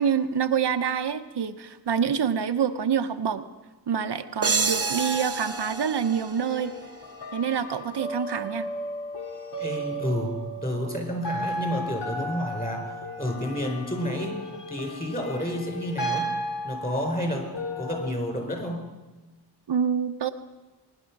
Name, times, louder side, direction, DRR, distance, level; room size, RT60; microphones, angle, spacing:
voice 1, 0.0-3.5 3.9-6.7 7.3-8.7 19.7-20.3, right 7 dB, 80° right, 8 dB, 0.8 m, -26 dB
sound 1, 4.4-7.1, right 5 dB, 35° right, 0.8 m, -29 dB
sound 2, 4.6-18.1, right 1 dB, 85° left, 2.1 m, -35 dB
voice 2, 9.6-14.4 14.7-16.3 16.6-17.5 17.8-18.9, left 1 dB, 20° left, 2 dB, 4.3 m, -30 dB
22.0 x 10.5 x 6.0 m, 1.2 s
wide cardioid pair, 85°, 41 cm